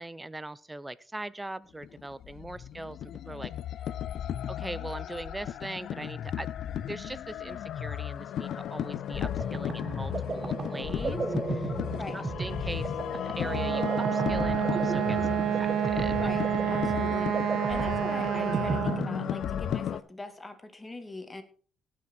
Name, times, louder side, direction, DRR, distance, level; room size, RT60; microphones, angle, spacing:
voice 1, 0.0-3.5 4.5-6.5 6.9-11.2 11.5-16.7, right 2 dB, 15° right, 18 dB, 0.7 m, -41 dB
sound 1, 1.8-20.0, left 10 dB, 70° left, 0.6 m, -35 dB
sound 2, 9.0-19.8, right 4 dB, 40° right, 1.2 m, -35 dB
Wind instrument woodwind instrument, 13.4-19.1, right 10 dB, 75° right, 0.4 m, -29 dB
voice 2, 16.1-21.4, left 2 dB, 20° left, 8 dB, 2.1 m, -42 dB
18.0 x 6.0 x 4.5 m, 0.41 s
cardioid pair, 90°, 0 cm